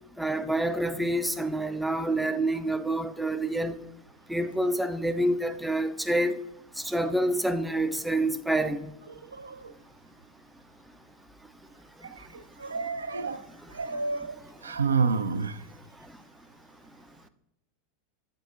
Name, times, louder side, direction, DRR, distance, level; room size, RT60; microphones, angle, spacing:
voice 1, 0.2-3.8 4.3-6.3 6.8-8.9, right 1 dB, 5° right, 0.4 m, -27 dB
voice 2, 9.1-9.7 12.0-15.6, right 4 dB, 75° right, 0.3 m, -30 dB
8.2 x 4.7 x 2.5 m
figure-of-eight pair, 85°, 0 cm